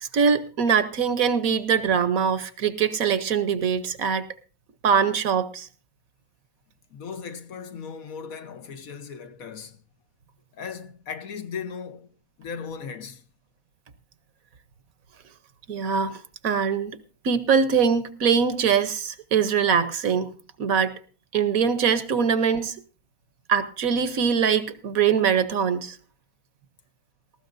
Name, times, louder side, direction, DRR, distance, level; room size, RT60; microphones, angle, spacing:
voice 1, 0.0-4.2 4.8-5.7 15.7-17.0 17.2-20.3 20.6-20.9 21.3-22.8 23.5-26.0, right 6 dB, 65° right, 1.3 m, -23 dB
voice 2, 6.9-9.8 10.5-12.1 12.4-13.2, left 6 dB, 65° left, 1.4 m, -37 dB
18.5 x 15.0 x 2.6 m
omnidirectional pair, 1.6 m